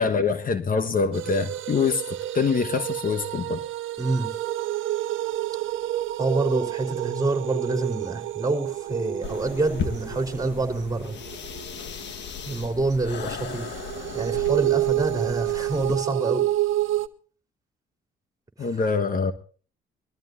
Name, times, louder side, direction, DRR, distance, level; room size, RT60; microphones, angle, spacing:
voice 1, 0.0-3.6 18.6-19.3, left 5 dB, 45° left, 1.3 m, -24 dB
sound 1, 1.1-12.6 13.3-17.1, right 15 dB, 80° right, 1.0 m, -29 dB
voice 2, 4.0-4.3 6.2-11.1 12.5-13.8 14.1-16.5 18.6-18.7, right 3 dB, 20° right, 4.0 m, -27 dB
sound 2, 9.2-16.0, left 6 dB, 65° left, 1.4 m, -36 dB
22.5 x 13.5 x 2.6 m
cardioid pair, 90°, 20 cm